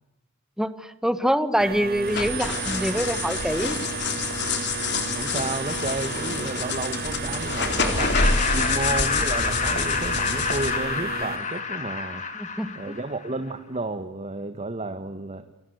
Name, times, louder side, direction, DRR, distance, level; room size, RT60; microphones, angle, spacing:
voice 1, 0.6-3.8 12.3-12.9, equal, 5° right, 12 dB, 1.4 m, -25 dB
sound 1, 1.6-11.4, right 6 dB, 45° right, 2.8 m, -34 dB
sound 2, 2.1-10.7, left 4 dB, 55° left, 3.8 m, -27 dB
voice 2, 5.1-8.2 8.5-12.2 12.7-15.5, right 2 dB, 30° right, 9 dB, 1.4 m, -32 dB
Laughter, 8.0-13.3, left 5 dB, 35° left, 3.4 m, -28 dB
29.5 x 25.0 x 7.9 m, 0.97 s
head